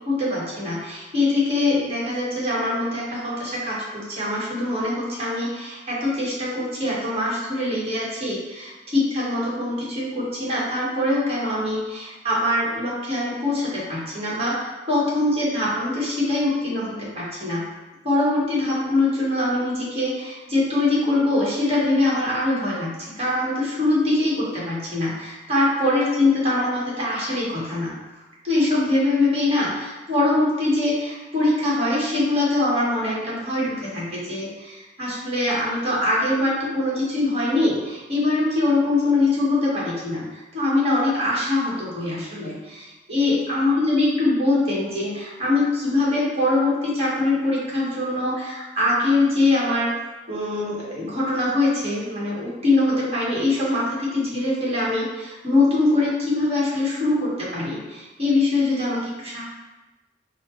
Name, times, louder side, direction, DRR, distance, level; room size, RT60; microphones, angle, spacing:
voice 1, 0.1-17.7 18.0-27.9 28.4-49.9 50.3-59.4, left 2 dB, 35° right, -6 dB, 1.2 m, -23 dB
4.0 x 2.0 x 4.4 m, 1.1 s
head